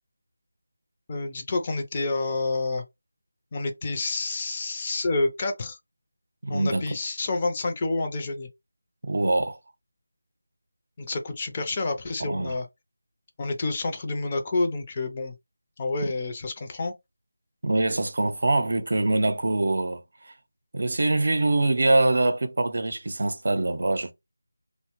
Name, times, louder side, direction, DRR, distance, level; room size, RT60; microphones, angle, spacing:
voice 1, 1.1-2.8 3.5-5.8 6.5-8.5 11.0-12.7 13.4-15.4 15.8-16.9, left 3 dB, 25° left, 0.5 m, -28 dB
voice 2, 6.4-6.8 9.0-9.6 12.2-12.6 16.0-16.1 17.6-20.3 20.7-24.1, right 2 dB, 60° right, 0.5 m, -24 dB
2.7 x 2.1 x 2.9 m
figure-of-eight pair, 170°, 0 cm